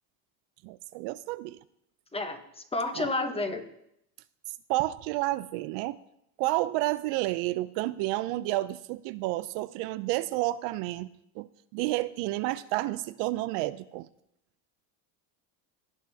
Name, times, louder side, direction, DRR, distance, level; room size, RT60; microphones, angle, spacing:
voice 1, 0.6-1.6 3.0-3.1 4.7-6.0 6.4-11.1 11.4-14.1, right 17 dB, 70° right, 14 dB, 0.6 m, -30 dB
voice 2, 2.1-3.6, left 2 dB, 10° left, 6 dB, 1.0 m, -31 dB
18.0 x 8.4 x 2.8 m, 0.78 s
cardioid pair, 125°, 46 cm